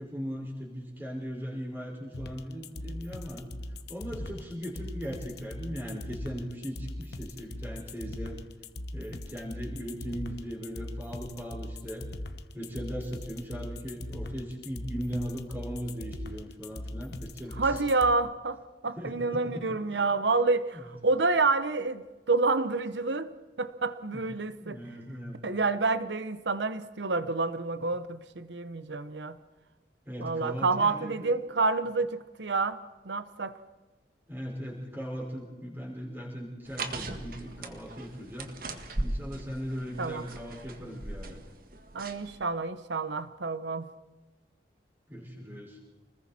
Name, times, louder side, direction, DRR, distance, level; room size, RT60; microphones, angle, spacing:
voice 1, 0.0-3.5 3.9-8.3 8.9-12.1 12.5-17.8 19.0-19.8 20.7-20.8 24.1-24.2 24.6-25.4 30.1-31.3 34.3-38.5 39.0-41.4 45.1-45.8, equal, 10° right, -3 dB, 5.2 m, -38 dB
sound 1, 2.1-18.1, left 1 dB, 65° left, 1.1 m, -40 dB
voice 2, 17.6-22.0 22.3-23.3 23.6-24.8 25.4-29.4 30.2-32.8 33.0-33.6 40.0-40.3 41.9-43.9, right 3 dB, 85° right, 13 dB, 1.0 m, -28 dB
sound 2, 36.7-42.4, right 2 dB, 55° right, 1.8 m, -38 dB
29.5 x 20.5 x 4.3 m, 1.2 s
head